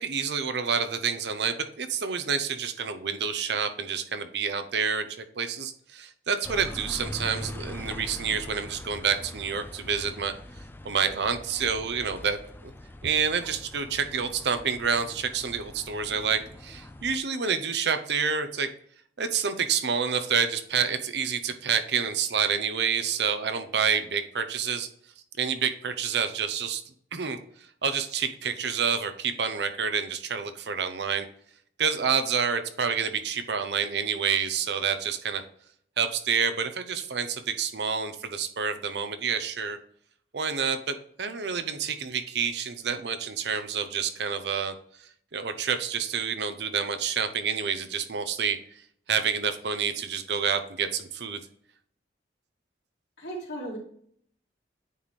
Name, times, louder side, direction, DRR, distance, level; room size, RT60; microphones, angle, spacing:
voice 1, 0.0-10.3 10.8-12.7 13.0-18.7 19.2-24.9 25.4-26.8 27.1-27.4 27.8-31.3 31.8-35.4 36.0-39.8 40.3-44.7 45.3-48.6 49.1-51.4, right 6 dB, 70° right, 9 dB, 0.7 m, -28 dB
sound 1, 6.4-17.2, left 1 dB, 10° left, 0.4 m, -42 dB
voice 2, 53.2-53.8, right 1 dB, 75° left, -3 dB, 2.7 m, -36 dB
9.1 x 4.2 x 3.2 m, 0.63 s
head